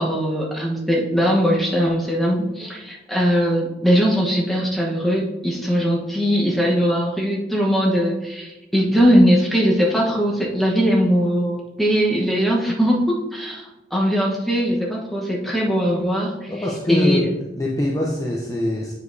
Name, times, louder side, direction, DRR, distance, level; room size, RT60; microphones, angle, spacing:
voice 1, 0.0-16.5 16.9-17.3, equal, ahead, -3 dB, 1.1 m, -20 dB
voice 2, 16.5-17.3 17.5-18.9, left 1 dB, 20° left, -3 dB, 0.7 m, -23 dB
8.3 x 4.9 x 2.7 m, 1.0 s
head